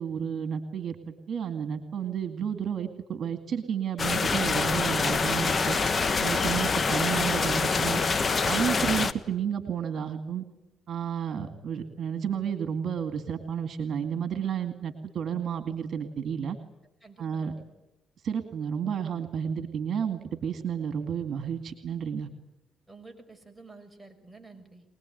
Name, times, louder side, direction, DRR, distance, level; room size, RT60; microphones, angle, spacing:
voice 1, 0.0-5.8 6.2-8.0 8.4-10.5 10.9-16.6 17.2-17.5 18.2-22.3, right 8 dB, 60° right, 9 dB, 2.2 m, -31 dB
sound 1, 4.0-9.1, left 4 dB, 35° left, 1.4 m, -25 dB
voice 2, 17.0-17.6 22.9-24.8, right 3 dB, 5° right, 2 dB, 5.9 m, -50 dB
24.0 x 20.0 x 9.4 m, 0.93 s
cardioid pair, 90°, 0 cm